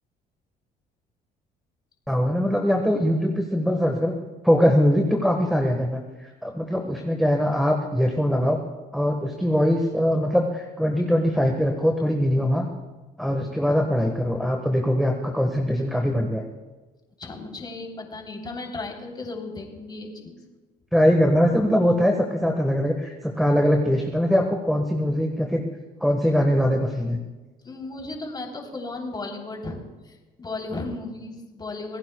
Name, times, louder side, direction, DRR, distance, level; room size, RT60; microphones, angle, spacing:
voice 1, 2.1-4.1 4.4-8.6 8.9-12.7 13.2-16.4 20.9-25.7 26.0-27.2, equal, ahead, 2 dB, 1.4 m, -22 dB
voice 2, 17.2-20.4 27.6-29.8 30.0-32.0, left 2 dB, 25° left, 0 dB, 3.5 m, -35 dB
27.5 x 17.5 x 2.3 m, 1.2 s
cardioid pair, 110°, 17 cm